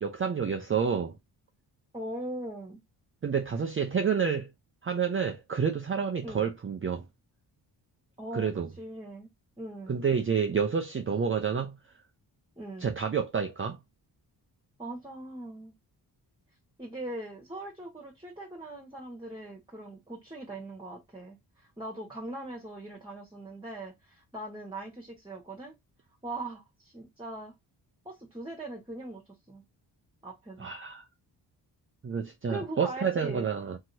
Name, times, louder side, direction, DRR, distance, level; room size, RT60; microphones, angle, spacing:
voice 1, 0.0-1.2 3.2-4.5 4.8-7.0 8.3-8.7 9.9-11.7 12.8-13.8 30.6-31.1 32.0-33.8, right 6 dB, 25° right, 0.6 m, -29 dB
voice 2, 1.9-2.8 6.2-6.5 8.2-9.3 9.6-10.0 12.6-12.9 14.8-15.7 16.8-25.7 26.2-27.5 28.0-29.2 29.5-29.6 30.2-30.7 32.5-33.5, right 1 dB, 10° right, 1.4 m, -40 dB
2.8 x 2.8 x 2.7 m
supercardioid pair, 40°, 49 cm